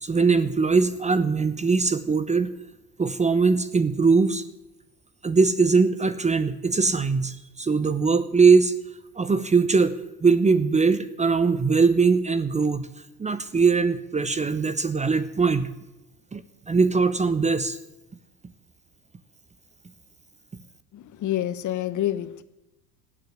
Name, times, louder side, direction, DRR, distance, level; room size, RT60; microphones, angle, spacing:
voice 1, 0.0-2.5 3.0-4.4 5.2-8.7 9.2-12.9 13.2-15.7 16.3-16.4 16.7-17.8, right 4 dB, 15° right, 14 dB, 1.0 m, -21 dB
voice 2, 20.9-22.4, left 12 dB, 40° left, 13 dB, 1.3 m, -28 dB
16.0 x 8.6 x 9.9 m, 0.96 s
hypercardioid pair, 80°, 44 cm